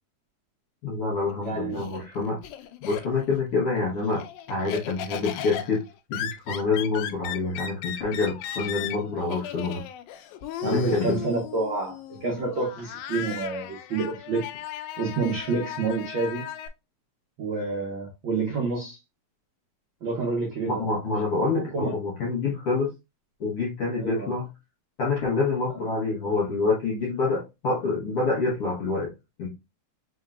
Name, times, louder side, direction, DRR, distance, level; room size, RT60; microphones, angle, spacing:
voice 1, 0.8-2.4 2.8-5.8 6.1-9.8 10.6-11.2 20.7-22.9 23.4-24.5 25.0-29.1 29.4-29.5, left 3 dB, 65° left, 1.4 m, -27 dB
Laughter, 1.3-3.4 3.8-16.7, left 10 dB, 85° left, 2.3 m, -36 dB
voice 2, 1.4-1.9 10.6-14.4 15.0-16.4 17.4-19.0 20.0-20.8 21.5-21.9 24.0-24.3, right 3 dB, 85° right, 1.1 m, -28 dB
5.2 x 3.6 x 2.4 m
omnidirectional pair, 4.2 m